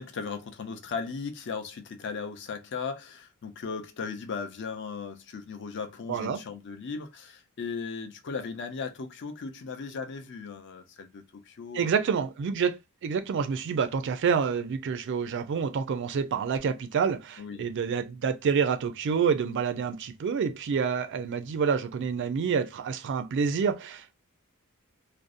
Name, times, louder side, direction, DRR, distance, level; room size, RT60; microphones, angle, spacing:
voice 1, 0.0-11.9 17.4-17.7, left 5 dB, 55° left, 0.5 m, -37 dB
voice 2, 6.1-6.4 11.7-24.1, right 6 dB, 55° right, 0.3 m, -28 dB
2.5 x 2.0 x 2.4 m
head